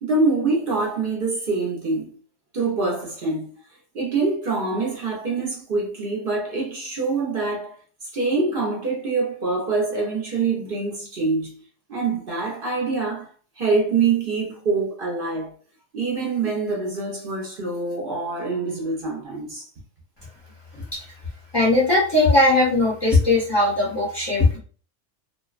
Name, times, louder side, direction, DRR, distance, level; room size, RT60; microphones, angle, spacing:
voice 1, 0.0-2.1 2.5-3.6 3.9-7.7 8.0-11.5 11.9-15.6 15.9-19.7, right 3 dB, 55° right, 0.8 m, -25 dB
voice 2, 21.5-24.6, left 2 dB, 25° left, 0.7 m, -19 dB
2.5 x 2.1 x 2.3 m
omnidirectional pair, 1.2 m